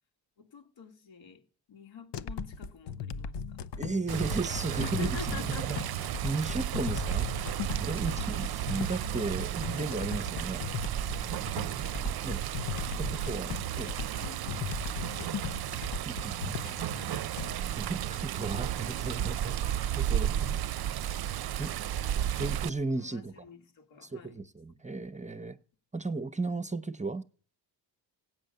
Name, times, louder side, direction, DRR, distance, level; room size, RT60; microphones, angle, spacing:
voice 1, 0.4-3.6 4.8-5.9 8.0-8.4 11.4-12.2 12.4-15.9 17.0-17.3 19.2-19.4 20.1-20.5 21.3-22.6 22.9-24.4, left 6 dB, 80° left, 2.4 m, -48 dB
sound 1, 2.1-17.6, left 6 dB, 65° left, 0.8 m, -38 dB
voice 2, 3.8-5.8 6.2-10.7 12.2-12.4 13.0-13.5 13.8-13.9 16.0-16.8 17.7-20.6 21.6-21.7 22.4-23.5 24.0-25.6 25.9-27.2, right 3 dB, 15° right, 0.8 m, -35 dB
Water, 4.1-22.7, right 11 dB, 55° right, 0.6 m, -33 dB
16.5 x 9.1 x 6.7 m
cardioid pair, 85°, 45 cm